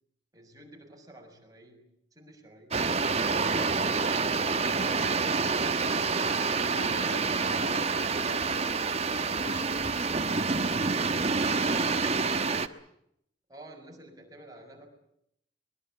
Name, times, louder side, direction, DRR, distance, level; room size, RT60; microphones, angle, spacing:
voice 1, 0.3-2.8 13.5-14.9, right 1 dB, 20° right, 2 dB, 6.5 m, -50 dB
sound 1, 2.7-12.7, right 4 dB, 35° right, 1.2 m, -27 dB
voice 2, 6.3-12.5, left 1 dB, 75° left, 11 dB, 3.4 m, -48 dB
24.0 x 22.5 x 8.5 m, 0.75 s
head